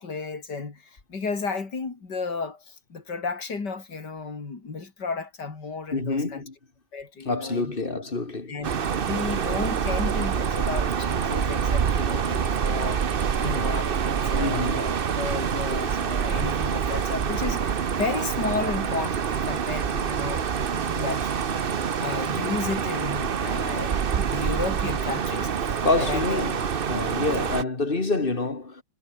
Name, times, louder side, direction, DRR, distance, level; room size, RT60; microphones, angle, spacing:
voice 1, 0.0-6.4 6.9-8.0 8.5-26.4, left 4 dB, 80° left, 4.0 m, -33 dB
voice 2, 5.9-6.5 7.3-8.6 14.4-14.8 25.8-26.6 26.9-28.8, left 3 dB, 30° left, 2.3 m, -27 dB
sound 1, 8.6-27.6, right 7 dB, 40° right, 0.9 m, -26 dB
omnidirectional pair, 1.8 m